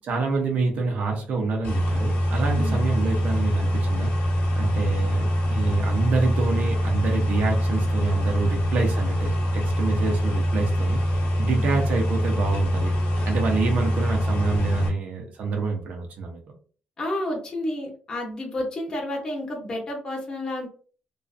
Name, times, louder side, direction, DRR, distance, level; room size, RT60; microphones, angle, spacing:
voice 1, 0.0-4.2 4.6-11.0 11.4-12.9 13.3-16.4, right 4 dB, 55° right, 2 dB, 0.6 m, -27 dB
sound 1, 1.6-14.9, equal, 85° left, 0.8 m, -24 dB
voice 2, 2.5-2.9 11.4-11.8 17.0-20.7, left 1 dB, 25° left, -1 dB, 0.7 m, -31 dB
2.5 x 2.4 x 2.3 m, 0.41 s
cardioid pair, 165°, 3 cm